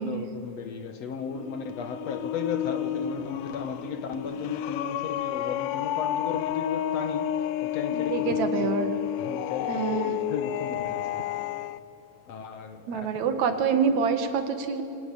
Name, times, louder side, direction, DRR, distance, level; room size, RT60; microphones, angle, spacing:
voice 1, 0.0-8.7 9.2-11.3 12.3-13.4, left 6 dB, 65° left, 2.1 m, -35 dB
sound 1, 1.3-11.8, left 11 dB, 85° left, 2.2 m, -30 dB
voice 2, 7.9-8.9 9.7-10.2 12.9-14.8, right 6 dB, 65° right, 2.9 m, -26 dB
25.0 x 19.0 x 8.6 m
omnidirectional pair, 3.6 m